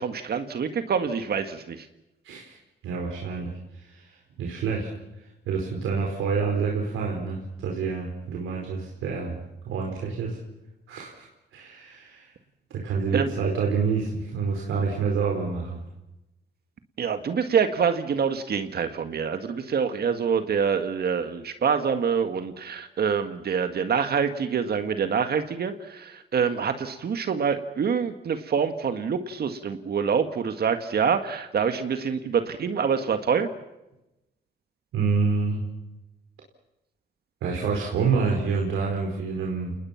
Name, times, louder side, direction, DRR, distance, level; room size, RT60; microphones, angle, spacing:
voice 1, 0.0-1.9 13.1-13.3 17.0-33.5, right 6 dB, 55° right, 8 dB, 1.8 m, -26 dB
voice 2, 2.2-2.6 2.8-3.5 3.9-4.9 5.5-9.4 9.6-10.4 10.9-11.3 11.5-12.3 12.7-15.8 34.9-35.6 37.4-39.8, right 5 dB, 80° right, -1 dB, 4.8 m, -27 dB
29.0 x 20.0 x 5.9 m, 0.93 s
cardioid pair, 90°, 20 cm